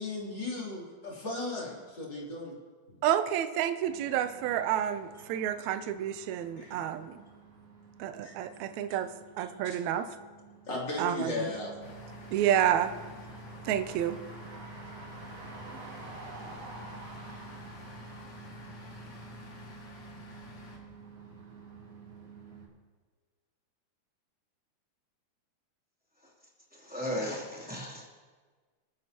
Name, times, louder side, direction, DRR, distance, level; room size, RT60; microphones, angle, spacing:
voice 1, 0.0-2.5 6.6-6.8 8.2-8.3 9.6-9.8 10.7-11.7, left 2 dB, 35° left, -4 dB, 3.5 m, -36 dB
voice 2, 3.0-7.1 8.0-9.1 9.4-10.1 11.0-11.5 12.3-12.9 13.7-14.2, right 10 dB, 75° right, 9 dB, 1.9 m, -29 dB
sound 1, 3.9-22.7, right 5 dB, 45° right, 4.2 m, -49 dB
sound 2, 11.8-20.8, left 3 dB, 65° left, 3.3 m, -48 dB
voice 3, 26.8-28.1, equal, 5° right, -5 dB, 2.5 m, -35 dB
28.5 x 9.6 x 2.9 m, 1.4 s
omnidirectional pair, 3.4 m